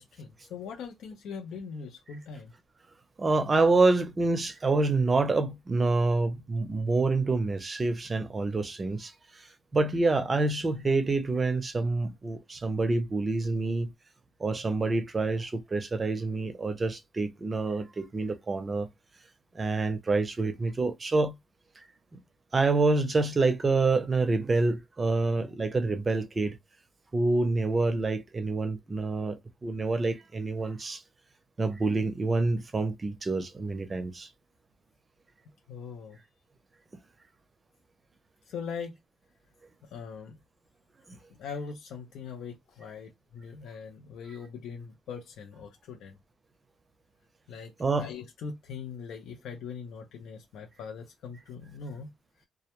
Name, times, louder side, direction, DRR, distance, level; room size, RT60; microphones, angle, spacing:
voice 1, 0.0-2.5 35.7-36.2 38.5-38.9 39.8-40.4 41.4-46.1 47.5-52.1, left 6 dB, 80° left, 0.6 m, -41 dB
voice 2, 3.2-9.5 9.7-13.9 14.4-18.9 19.5-21.3 22.1-22.2 22.5-26.6 27.1-31.0 31.6-34.3 41.1-41.2 47.8-48.1, right 3 dB, 30° right, 0.5 m, -27 dB
2.3 x 2.1 x 2.9 m
cardioid pair, 90°, 0 cm